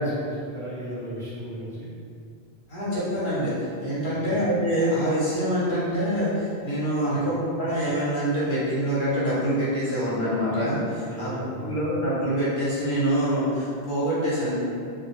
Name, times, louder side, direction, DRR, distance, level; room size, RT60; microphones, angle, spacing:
voice 1, 0.0-1.9 4.1-4.4 7.1-7.3 11.0-11.8, equal, 5° left, -11 dB, 0.5 m, -35 dB
voice 2, 2.7-3.5 3.8-11.3 11.6-14.6, equal, 60° left, -9 dB, 0.9 m, -25 dB
2.2 x 2.1 x 2.9 m, 2.3 s
omnidirectional pair, 1.0 m